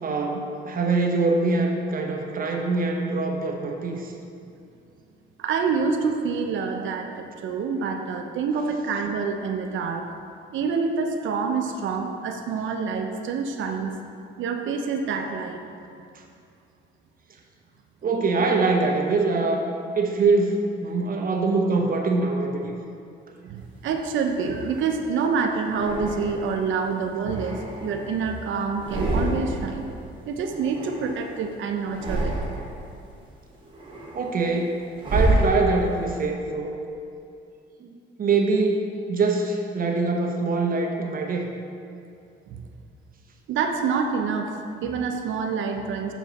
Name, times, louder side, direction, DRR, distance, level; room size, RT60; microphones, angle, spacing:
voice 1, 0.0-4.1 18.0-19.6 20.0-22.7 34.1-34.8 35.1-36.8 37.8-37.9 38.2-41.5, right 3 dB, 45° right, 2 dB, 0.8 m, -23 dB
voice 2, 5.4-10.0 10.5-13.9 14.4-15.6 23.4-30.0 30.3-32.3 42.5-42.6 43.5-46.1, right 5 dB, 75° right, 4 dB, 0.6 m, -27 dB
sound 1, 23.8-25.0 25.7-26.6 27.1-28.3 28.7-29.8 30.0-31.4 31.8-32.9 33.3-36.1, right 1 dB, 25° right, 1.5 m, -29 dB
6.7 x 4.6 x 4.0 m, 2.5 s
cardioid pair, 90°, 20 cm